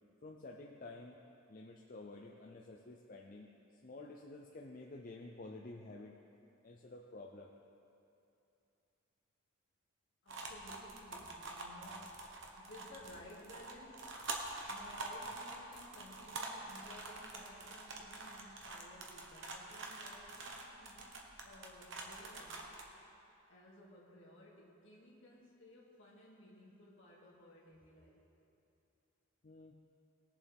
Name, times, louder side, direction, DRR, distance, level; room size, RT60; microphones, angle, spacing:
voice 1, 0.2-1.2 1.5-3.5 3.8-6.2 6.6-7.5 29.4-29.7, left 2 dB, 40° left, 1 dB, 0.5 m, -51 dB
voice 2, 10.2-22.8 23.5-28.2, left 1 dB, 60° left, -4 dB, 2.3 m, -57 dB
sound 1, 10.3-22.8, right 3 dB, 60° right, 1.2 m, -46 dB
19.5 x 7.4 x 3.5 m, 2.8 s
head